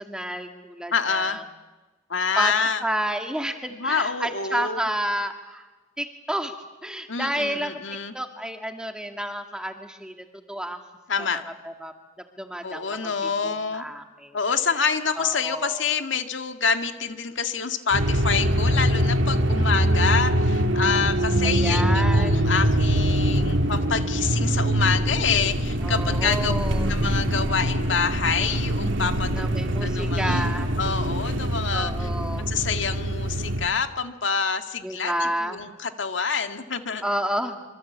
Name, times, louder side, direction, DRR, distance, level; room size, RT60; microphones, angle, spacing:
voice 1, 0.0-1.4 2.4-2.5 2.8-5.7 6.0-7.8 8.1-10.8 11.2-11.9 12.4-14.4 15.2-15.8 21.4-22.5 25.8-27.0 29.3-30.7 31.7-32.5 34.8-35.6 37.0-37.7, right 1 dB, 5° right, 5 dB, 2.1 m, -30 dB
voice 2, 0.9-1.4 2.1-2.8 3.7-4.9 7.1-8.1 11.1-11.4 12.6-13.9 14.3-26.5 26.8-29.3 29.8-30.5 30.8-32.1 32.5-37.0, left 5 dB, 70° left, 8 dB, 1.9 m, -27 dB
sound 1, 17.9-33.7, equal, 75° right, 2.6 m, -23 dB
26.0 x 25.0 x 8.6 m, 1.2 s
head